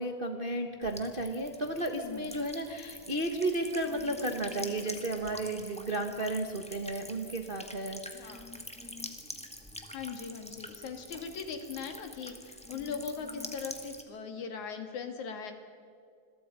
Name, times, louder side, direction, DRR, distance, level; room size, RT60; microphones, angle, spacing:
voice 1, 0.0-8.4, right 1 dB, 35° right, 4 dB, 0.8 m, -33 dB
Buzz / Water tap faucet / Trickle dribble, 0.8-14.0, left 1 dB, 5° left, 1.0 m, -46 dB
voice 2, 8.1-8.5 9.9-15.5, left 6 dB, 75° left, 5 dB, 3.4 m, -40 dB
27.5 x 22.5 x 5.3 m, 2.3 s
omnidirectional pair, 3.4 m